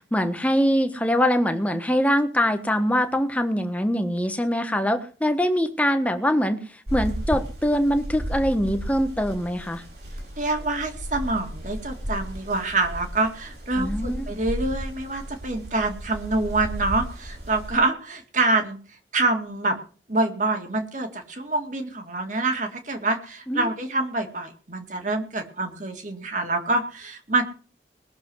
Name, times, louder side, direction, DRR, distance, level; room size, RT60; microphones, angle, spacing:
voice 1, 0.1-6.6 6.9-9.8 13.8-14.3 23.5-23.7, equal, 10° left, 6 dB, 1.3 m, -23 dB
sound 1, 6.9-17.7, equal, 65° right, 5.0 m, -34 dB
voice 2, 10.4-18.8 19.1-19.8 20.1-27.4, right 2 dB, 45° right, 5 dB, 2.2 m, -26 dB
20.0 x 6.9 x 6.3 m, 0.40 s
head